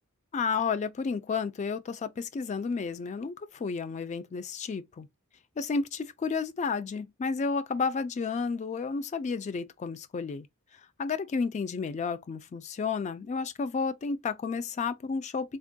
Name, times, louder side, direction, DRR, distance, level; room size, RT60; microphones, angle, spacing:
voice 1, 0.3-5.1 5.6-10.5 11.0-15.6, left 5 dB, 35° left, 0.3 m, -31 dB
3.4 x 2.2 x 2.6 m
head